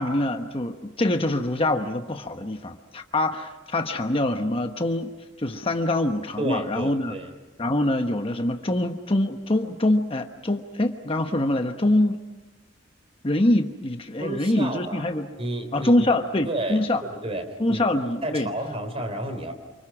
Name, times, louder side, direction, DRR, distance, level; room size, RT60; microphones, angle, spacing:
voice 1, 0.0-5.1 5.4-7.1 7.6-12.2 13.2-15.3 15.7-17.0 17.6-18.5, left 1 dB, 30° left, 6 dB, 1.1 m, -24 dB
voice 2, 6.4-7.3 14.2-15.0 15.4-16.1 16.4-16.8 17.1-17.9 18.2-19.5, right 1 dB, 30° right, 7 dB, 3.4 m, -31 dB
29.0 x 26.0 x 6.1 m, 1.1 s
head